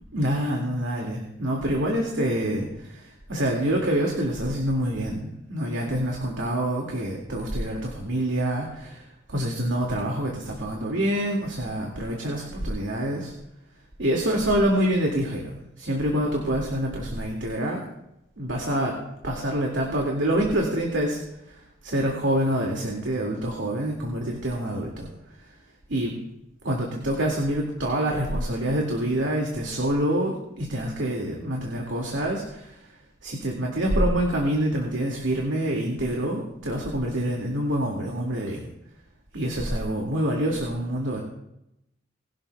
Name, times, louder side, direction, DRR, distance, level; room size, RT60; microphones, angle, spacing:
voice 1, 0.1-9.0 9.3-13.3 14.0-17.8 18.4-19.0 19.2-21.2 21.8-25.1 25.9-26.2 26.6-32.7 33.2-38.7 39.3-41.2, right 1 dB, 80° right, -1 dB, 2.1 m, -26 dB
20.5 x 11.5 x 2.3 m, 0.84 s
head